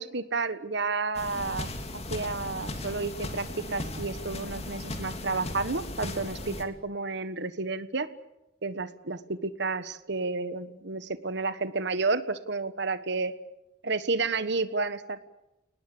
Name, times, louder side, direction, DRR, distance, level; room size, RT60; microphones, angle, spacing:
voice 1, 0.0-8.1 8.6-13.3 13.8-15.2, right 3 dB, 60° right, 13 dB, 1.4 m, -31 dB
sound 1, 1.1-6.6, left 1 dB, 35° left, 2.7 m, -37 dB
29.0 x 19.5 x 8.7 m, 0.94 s
head